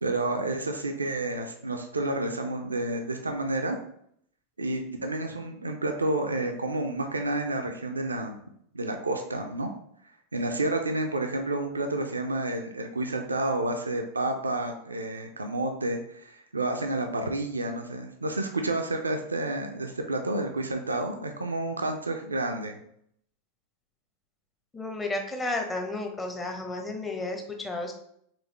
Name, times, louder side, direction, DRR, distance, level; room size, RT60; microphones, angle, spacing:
voice 1, 0.0-3.8 4.6-8.4 8.7-9.7 10.3-22.8, right 2 dB, 85° right, 4 dB, 0.4 m, -30 dB
voice 2, 24.7-27.9, left 2 dB, 15° left, 3 dB, 0.8 m, -32 dB
4.2 x 3.1 x 3.0 m, 0.69 s
figure-of-eight pair, 90°, 0 cm